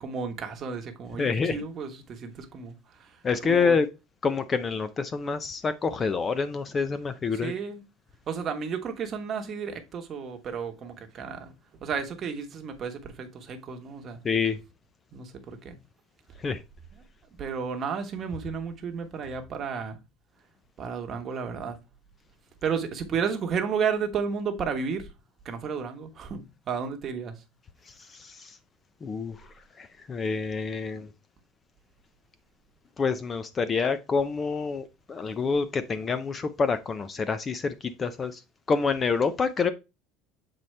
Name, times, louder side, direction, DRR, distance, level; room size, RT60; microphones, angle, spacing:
voice 1, 0.0-3.8 7.3-7.8 8.3-11.5 11.8-14.2 15.1-15.8 17.4-20.0 20.8-21.8 22.6-25.1 25.4-27.3, right 6 dB, 30° right, 1.1 m, -32 dB
voice 2, 1.2-1.6 3.2-3.9 4.2-7.5 14.2-14.6 16.4-16.6 27.9-28.6 29.0-31.1 33.0-38.4 38.7-39.7, left 5 dB, 20° left, 0.4 m, -27 dB
7.7 x 4.2 x 3.2 m
cardioid pair, 150°, 0 cm